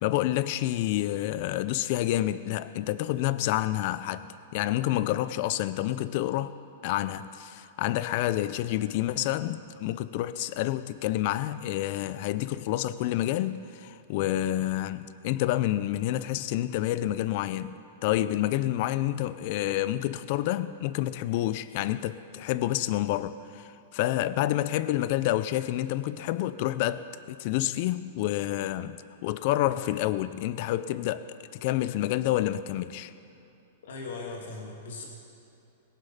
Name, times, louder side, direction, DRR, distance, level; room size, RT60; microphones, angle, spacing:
voice 1, 0.0-4.3 4.5-6.5 6.8-17.8 18.0-33.1, left 14 dB, 35° left, 0.4 m, -28 dB
voice 2, 33.8-35.1, left 3 dB, 75° left, 2.5 m, -38 dB
21.0 x 7.3 x 5.7 m
supercardioid pair, 175°, 0 cm